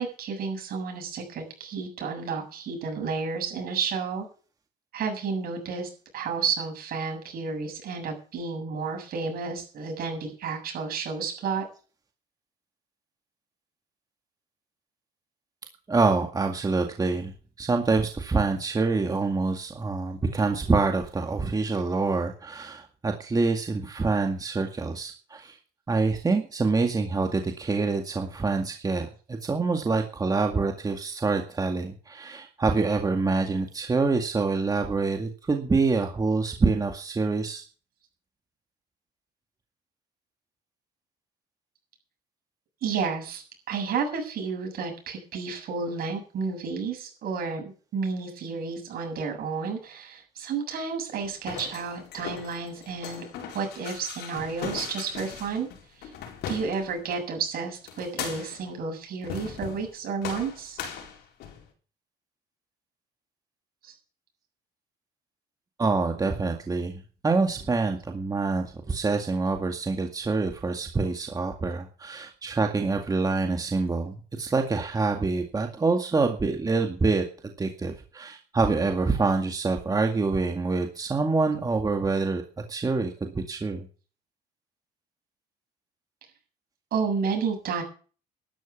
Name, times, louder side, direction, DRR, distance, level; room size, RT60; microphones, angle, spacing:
voice 1, 0.0-4.3 4.9-11.6 42.8-47.6 47.9-53.2 53.5-55.7 55.9-56.1 56.5-60.8 63.8-63.9 86.9-87.8, right 5 dB, 60° right, 3 dB, 7.4 m, -31 dB
voice 2, 15.9-17.3 17.6-25.6 25.9-37.6 65.8-82.4 82.7-83.9, right 3 dB, 20° right, 4 dB, 2.0 m, -26 dB
sound 1, 51.2-57.2 57.9-58.7 59.2-59.9 60.2-61.7, left 8 dB, 80° left, 4.4 m, -39 dB
12.5 x 11.0 x 7.1 m, 0.39 s
cardioid pair, 110°, 17 cm